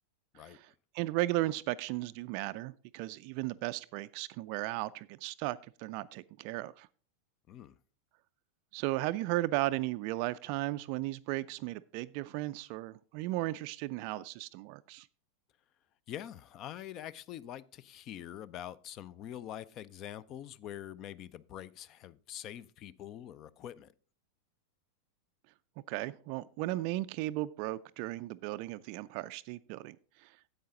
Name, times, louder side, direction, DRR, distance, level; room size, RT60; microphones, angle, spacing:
voice 1, 0.3-0.7 0.9-6.9 8.7-15.1 25.9-30.5, right 17 dB, 45° right, 0.3 m, -35 dB
voice 2, 7.5-7.8 16.1-23.9, left 11 dB, 35° left, 0.4 m, -45 dB
10.0 x 7.9 x 3.8 m
figure-of-eight pair, 90°, 0 cm